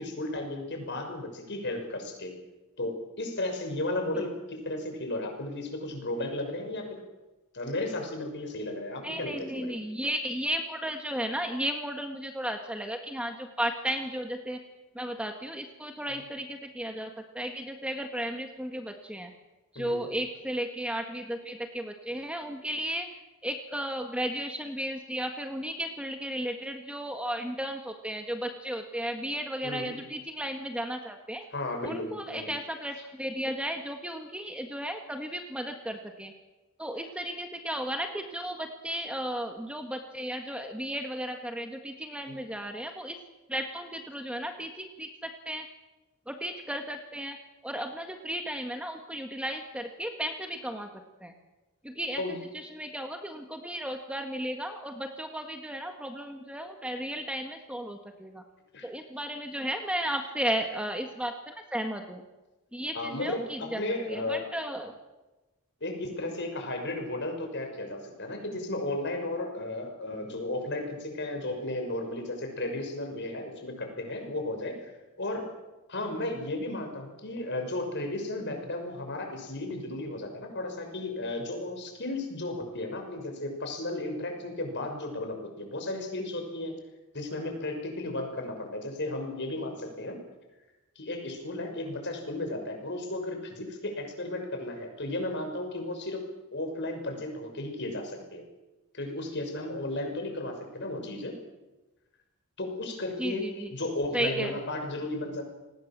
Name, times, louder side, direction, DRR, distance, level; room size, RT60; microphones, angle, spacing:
voice 1, 0.0-2.3 2.8-6.9 7.5-9.7 16.1-16.2 19.7-20.1 29.6-30.0 31.5-32.5 33.0-33.1 42.3-42.4 52.2-52.3 58.7-58.9 62.9-64.5 65.8-75.4 75.9-86.8 87.1-90.2 91.0-96.2 96.5-98.4 98.9-101.3 102.6-105.4, left 2 dB, 50° left, 4 dB, 6.1 m, -34 dB
voice 2, 9.0-14.6 15.0-19.3 19.7-23.1 23.4-31.4 31.8-36.3 36.8-43.2 43.5-45.7 46.3-47.4 47.6-50.9 51.2-51.3 51.8-52.2 52.7-58.4 58.8-62.2 62.7-63.8 64.1-64.9 103.2-103.7 104.1-104.5, right 1 dB, 5° right, 4 dB, 1.7 m, -34 dB
29.0 x 19.5 x 7.5 m, 1.1 s
head